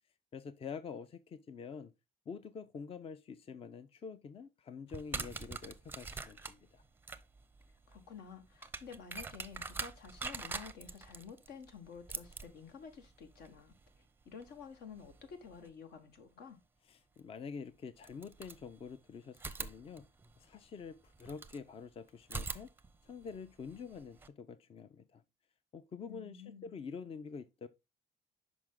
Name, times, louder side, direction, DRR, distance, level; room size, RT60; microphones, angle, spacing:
voice 1, 0.3-1.9 2.3-6.8 16.9-20.0 20.4-22.7 23.0-25.2 25.7-27.7, left 6 dB, 35° left, 0.5 m, -47 dB
sound 1, 4.9-15.7 17.2-17.3 18.0-19.0 19.3-21.6 22.2-24.3, right 3 dB, 15° right, 0.6 m, -45 dB
voice 2, 7.9-16.6 26.1-26.7, left 6 dB, 75° left, 1.3 m, -51 dB
6.1 x 4.9 x 3.6 m
cardioid pair, 110°, 17 cm